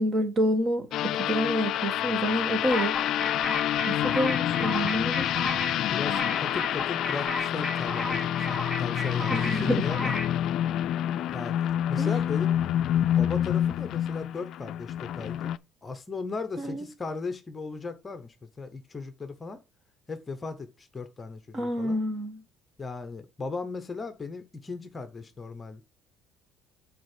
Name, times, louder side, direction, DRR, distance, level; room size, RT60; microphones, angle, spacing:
voice 1, 0.0-3.0 3.8-5.5 9.3-9.9 12.0-12.1 16.6-16.9 21.5-22.4, equal, 30° right, 1.4 m, -28 dB
sound 1, 0.9-15.6, left 11 dB, 55° left, 0.4 m, -28 dB
sound 2, 2.7-10.4, left 2 dB, 5° left, 1.3 m, -34 dB
voice 2, 5.9-10.1 11.3-12.6 13.2-15.5 15.8-19.6 20.1-22.0 22.8-25.8, left 4 dB, 20° left, 0.9 m, -36 dB
6.2 x 4.5 x 6.1 m
cardioid pair, 140°, 0 cm